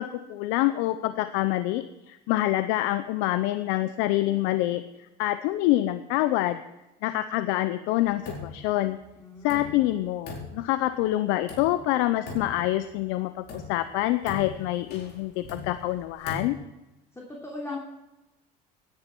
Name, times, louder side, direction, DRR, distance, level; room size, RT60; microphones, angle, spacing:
voice 1, 0.0-4.8 5.2-6.6 7.0-9.0 9.4-16.6, left 15 dB, 70° left, 12 dB, 0.7 m, -26 dB
sound 1, 8.0-8.8 9.0-9.1 9.5-11.0 11.5-12.0 12.3-13.0 13.5-16.4, left 3 dB, 55° left, 4.5 m, -40 dB
voice 2, 9.2-9.8 17.1-17.8, left 2 dB, 15° left, -2 dB, 3.2 m, -38 dB
17.0 x 10.5 x 4.5 m, 0.99 s
supercardioid pair, 95°, 21 cm